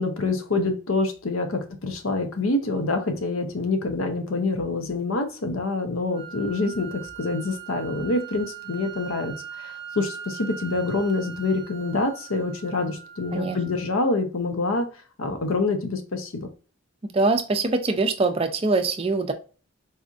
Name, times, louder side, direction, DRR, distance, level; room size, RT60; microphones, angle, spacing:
voice 1, 0.0-14.9 15.2-16.5, left 3 dB, 75° left, 6 dB, 0.7 m, -26 dB
sound 1, 6.1-14.1, right 9 dB, 20° left, 0.8 m, -41 dB
voice 2, 17.0-19.3, right 3 dB, 25° right, 7 dB, 0.4 m, -23 dB
4.1 x 2.5 x 2.4 m, 0.37 s
head